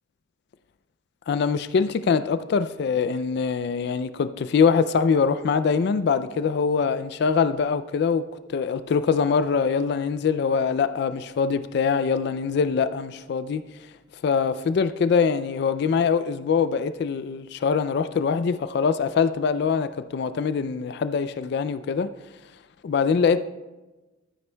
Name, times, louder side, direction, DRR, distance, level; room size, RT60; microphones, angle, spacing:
voice 1, 1.3-8.2 8.5-13.6 14.2-22.1 22.8-23.4, left 5 dB, 60° left, 0.3 m, -23 dB
14.0 x 9.4 x 2.2 m
head